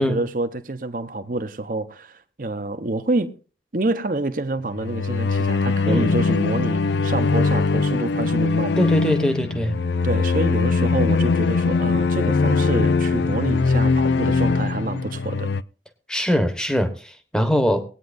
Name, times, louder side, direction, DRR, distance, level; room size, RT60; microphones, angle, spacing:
voice 1, 0.0-3.4 3.7-8.7 10.0-15.5, right 2 dB, 50° right, 0.9 m, -27 dB
sound 1, 4.7-15.6, left 4 dB, 85° left, 0.5 m, -21 dB
voice 2, 8.8-9.8 16.1-17.8, equal, 5° left, 1.1 m, -22 dB
20.0 x 9.2 x 2.6 m
head